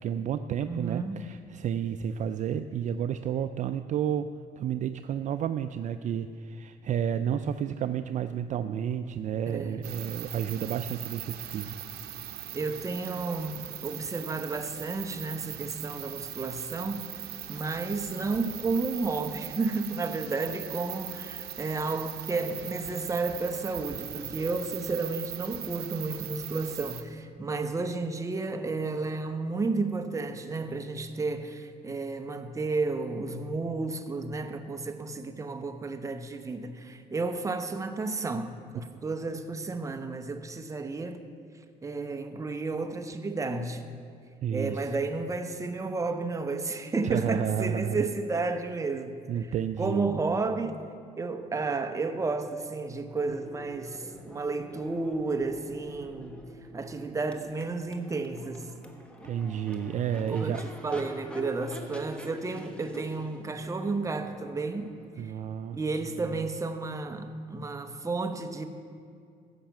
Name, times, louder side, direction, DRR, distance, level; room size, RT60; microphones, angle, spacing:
voice 1, 0.0-11.7 44.4-44.8 47.0-48.0 49.3-50.2 59.2-60.7 65.2-65.8, right 9 dB, 45° right, 0.4 m, -31 dB
voice 2, 0.7-1.2 9.5-9.8 12.5-17.2 17.5-41.2 41.8-43.9 44.5-49.2 49.8-50.8 51.2-56.4 56.7-58.7 60.3-65.0 65.7-68.7, right 3 dB, 20° right, 0.9 m, -32 dB
sound 1, 9.8-27.0, right 12 dB, 70° right, 0.8 m, -40 dB
Crowd / Race car auto racing / Accelerating revving vroom, 53.0-66.8, equal, 5° left, 1.3 m, -47 dB
14.5 x 5.8 x 7.5 m
cardioid pair, 110°, 17 cm